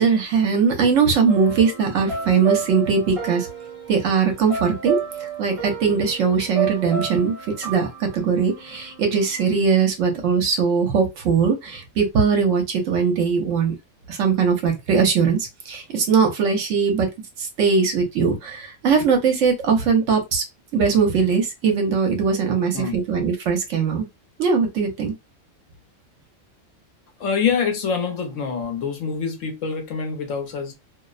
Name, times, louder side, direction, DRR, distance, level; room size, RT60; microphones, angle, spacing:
voice 1, 0.0-3.5 3.9-5.0 5.4-13.7 14.1-17.1 17.4-20.4 20.7-24.1 24.4-25.1, right 5 dB, 70° right, 1.0 m, -20 dB
sound 1, 1.3-9.5, right 7 dB, 35° right, 0.5 m, -31 dB
voice 2, 27.2-30.7, left 6 dB, 70° left, 1.0 m, -25 dB
2.6 x 2.0 x 2.3 m
omnidirectional pair, 1.4 m